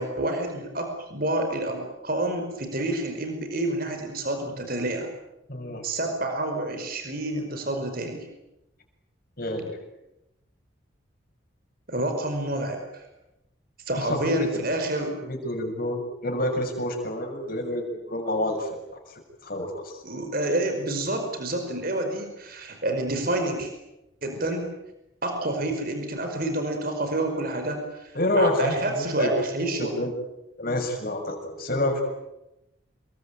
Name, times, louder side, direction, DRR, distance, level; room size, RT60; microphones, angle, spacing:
voice 1, 0.0-5.1 5.8-8.3 11.9-13.1 13.9-15.2 20.0-23.7 24.2-24.7 25.2-29.9, right 1 dB, 45° right, 5 dB, 5.0 m, -28 dB
voice 2, 5.5-5.9 9.4-9.8 13.9-14.5 15.2-18.8 19.4-20.0 28.1-29.3 29.8-30.1 30.6-32.0, left 1 dB, 45° left, 3 dB, 7.1 m, -28 dB
28.0 x 22.5 x 9.2 m, 0.93 s
head